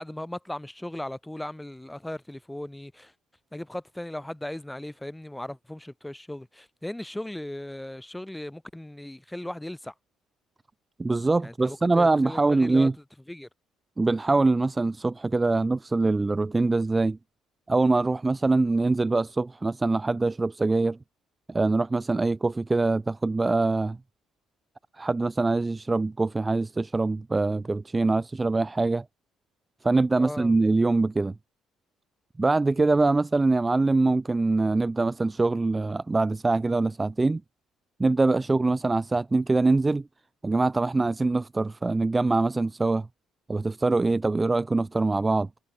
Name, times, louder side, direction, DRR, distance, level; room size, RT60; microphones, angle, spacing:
voice 1, 0.0-3.1 3.5-9.9 11.4-12.9 13.3-13.5 30.2-30.6, left 1 dB, 5° left, 6.8 m, -37 dB
voice 2, 11.0-12.9 14.0-17.2 17.7-21.0 21.5-24.0 25.0-29.0 29.8-31.3 32.4-37.4 38.0-40.1 40.4-43.1 43.5-45.5, right 3 dB, 20° right, 0.5 m, -23 dB
supercardioid pair, 70°, 0 cm